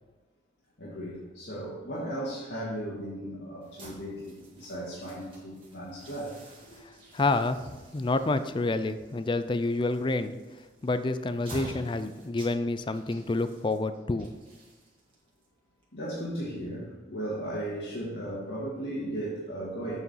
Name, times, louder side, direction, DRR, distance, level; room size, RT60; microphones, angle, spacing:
voice 1, 0.8-6.8 15.9-20.0, right 1 dB, 80° left, -8 dB, 2.0 m, -36 dB
sound 1, 3.6-16.7, right 1 dB, 30° right, 1.9 m, -49 dB
voice 2, 7.1-10.3 10.8-14.3, left 2 dB, 25° left, 11 dB, 0.4 m, -28 dB
8.2 x 4.8 x 5.6 m, 1.2 s
head